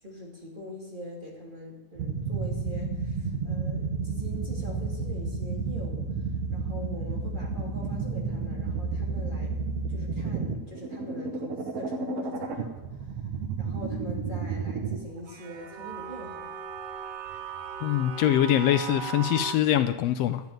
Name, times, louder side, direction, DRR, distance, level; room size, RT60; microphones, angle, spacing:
voice 1, 0.0-6.1 6.5-9.6 9.9-13.1 13.6-16.6, equal, 15° right, -2 dB, 2.5 m, -42 dB
sound 1, 2.0-15.0 15.3-19.5, right 5 dB, 60° right, 2.0 m, -32 dB
voice 2, 17.8-20.4, left 11 dB, 75° left, 10 dB, 1.5 m, -23 dB
12.0 x 7.1 x 9.4 m, 0.97 s
omnidirectional pair, 3.4 m